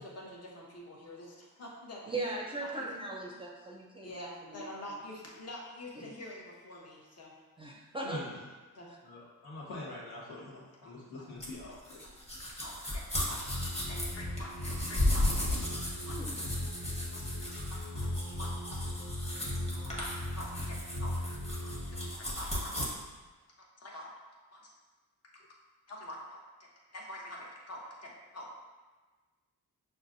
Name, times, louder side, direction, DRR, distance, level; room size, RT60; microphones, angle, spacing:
voice 1, 0.0-2.2 2.5-2.9 3.3-3.4 4.0-7.3 8.7-8.9 10.8-10.9 11.7-11.8 12.4-13.4 13.8-15.3 16.0-16.2 16.8-17.5 17.9-18.1 18.4-18.5 19.7-21.1 21.6-22.7 23.8-24.1 24.5-24.6 25.9-26.4 26.9-28.5, left 1 dB, 40° left, -3 dB, 1.0 m, -46 dB
voice 2, 2.1-4.7 6.0-6.2 7.6-8.4 16.0-16.6 18.3-18.4, right 2 dB, 15° right, -2 dB, 0.5 m, -39 dB
voice 3, 8.0-8.4 9.0-12.1, left 2 dB, 85° left, -7 dB, 1.4 m, -44 dB
sound 1, 11.4-22.9, left 1 dB, 15° left, 1.1 m, -35 dB
sound 2, 13.5-22.1, left 1 dB, 65° left, 1.2 m, -38 dB
5.8 x 2.2 x 2.6 m, 1.3 s
cardioid pair, 85°, 37 cm